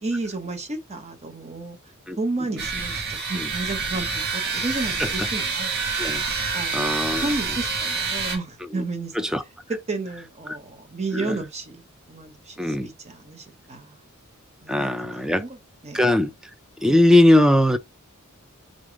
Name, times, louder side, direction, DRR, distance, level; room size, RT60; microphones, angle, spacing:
voice 1, 0.0-1.8 2.2-5.7 6.5-6.9 7.2-9.1 9.7-11.8 12.1-14.0 14.6-15.6 15.8-16.0, right 3 dB, 30° right, 0.9 m, -32 dB
sound 1, 2.6-8.4, right 4 dB, 50° right, 1.5 m, -27 dB
voice 2, 6.7-7.2 8.8-8.9 9.2-9.4 11.1-11.4 12.6-12.9 14.7-15.4 15.9-16.3 16.8-17.8, left 1 dB, 5° right, 0.4 m, -19 dB
3.8 x 3.4 x 3.5 m
head